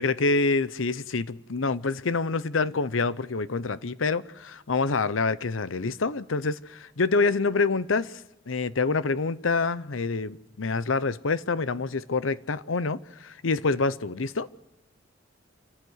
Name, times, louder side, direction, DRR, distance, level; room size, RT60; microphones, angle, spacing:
voice 1, 0.0-8.2 8.5-14.5, left 3 dB, 90° left, 0.8 m, -26 dB
28.0 x 15.0 x 8.0 m
head